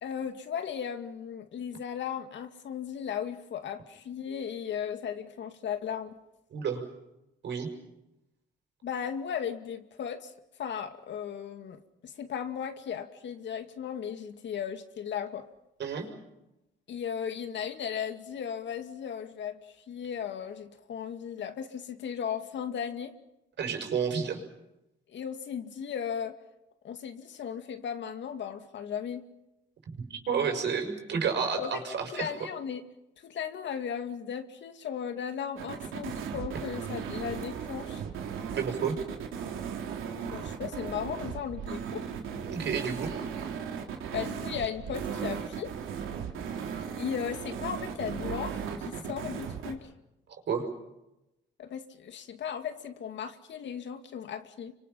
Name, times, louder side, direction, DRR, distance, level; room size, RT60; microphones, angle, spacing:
voice 1, 0.0-6.1 8.8-10.3 10.6-15.5 16.9-23.2 25.1-26.4 26.8-29.2 31.6-31.8 32.1-32.8 33.2-38.0 40.3-42.1 44.1-45.7 46.9-49.9 51.6-54.7, left 8 dB, 65° left, 2.4 m, -36 dB
voice 2, 6.5-6.8 7.4-7.7 15.8-16.1 23.6-24.4 30.3-32.3 38.5-39.0 42.4-43.1 50.5-50.7, right 6 dB, 60° right, 6.5 m, -30 dB
sound 1, 35.6-49.7, right 7 dB, 85° right, 3.5 m, -36 dB
30.0 x 25.0 x 5.8 m
cardioid pair, 90°, 20 cm